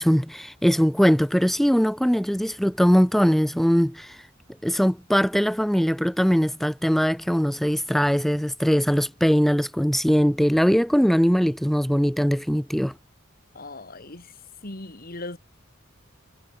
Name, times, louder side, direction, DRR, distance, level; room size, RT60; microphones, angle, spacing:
voice 1, 0.0-4.2 4.6-12.9, equal, ahead, 0.7 m, -21 dB
voice 2, 13.5-14.3 14.6-15.4, left 2 dB, 50° left, 3.2 m, -38 dB
head